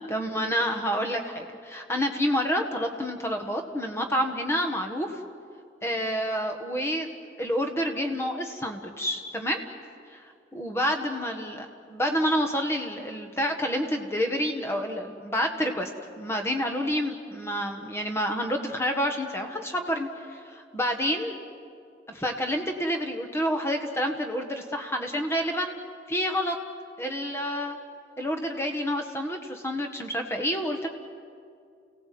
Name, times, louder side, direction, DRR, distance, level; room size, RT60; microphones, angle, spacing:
voice 1, 0.0-5.1 5.8-7.1 7.4-9.6 10.1-10.2 10.5-15.9 16.2-21.4 22.1-25.8 26.1-26.5 27.0-27.8 28.2-30.9, equal, 15° left, 4 dB, 1.5 m, -28 dB
29.5 x 18.0 x 7.7 m, 2.4 s
head